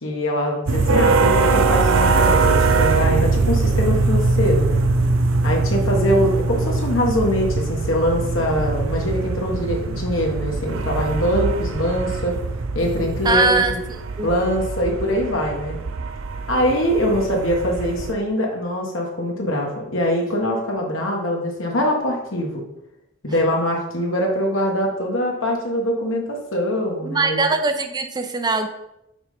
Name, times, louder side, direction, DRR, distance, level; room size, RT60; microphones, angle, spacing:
voice 1, 0.0-4.8 5.4-12.4 12.7-13.8 14.2-15.8 16.5-22.6 23.2-27.5, equal, 75° left, 0 dB, 1.5 m, -23 dB
sound 1, 0.7-18.1, right 3 dB, 90° right, 0.5 m, -22 dB
voice 2, 13.2-13.7 14.2-14.3 27.0-28.7, right 3 dB, 20° right, 6 dB, 0.6 m, -20 dB
6.0 x 4.0 x 5.0 m, 0.86 s
head